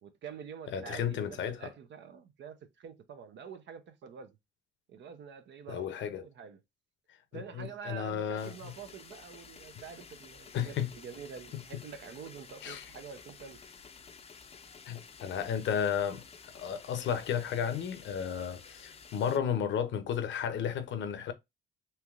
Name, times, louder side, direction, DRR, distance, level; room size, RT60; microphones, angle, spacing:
voice 1, 0.0-4.4 4.9-6.6 7.3-13.6, right 7 dB, 65° right, 0.7 m, -47 dB
voice 2, 0.7-1.7 5.7-6.2 7.3-8.7 10.5-10.9 12.6-12.9 14.9-16.2 16.5-21.3, left 8 dB, 70° left, 0.6 m, -33 dB
sound 1, 8.4-19.4, left 5 dB, 30° left, 0.5 m, -52 dB
3.3 x 2.8 x 2.4 m
cardioid pair, 90°, 20 cm